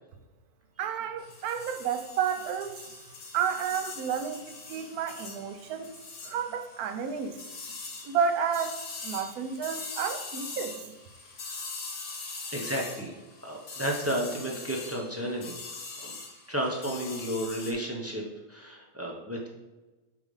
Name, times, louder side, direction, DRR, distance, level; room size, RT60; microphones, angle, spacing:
voice 1, 0.8-2.8 3.3-5.9 6.2-7.4 8.0-8.8 9.0-10.9, right 7 dB, 75° right, 8 dB, 1.1 m, -31 dB
sound 1, 1.2-17.7, left 3 dB, 65° left, 1.6 m, -42 dB
voice 2, 12.5-13.1 13.4-15.6 16.0-16.1 16.5-18.2 18.5-19.5, right 1 dB, 15° right, -1 dB, 0.7 m, -32 dB
7.0 x 3.4 x 5.4 m, 1.2 s
omnidirectional pair, 1.6 m